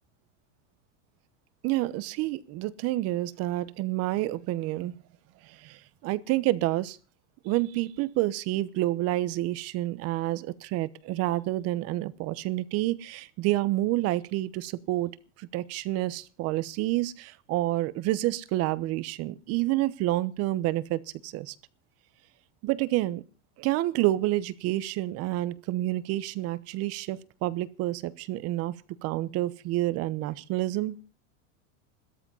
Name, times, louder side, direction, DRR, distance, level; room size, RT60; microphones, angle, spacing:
voice 1, 1.6-5.0 5.4-7.0 7.4-15.1 15.4-21.5 22.6-23.2 23.6-28.8 29.0-31.0, right 16 dB, 40° right, 1.0 m, -29 dB
15.0 x 13.5 x 5.6 m
supercardioid pair, 155°, 36 cm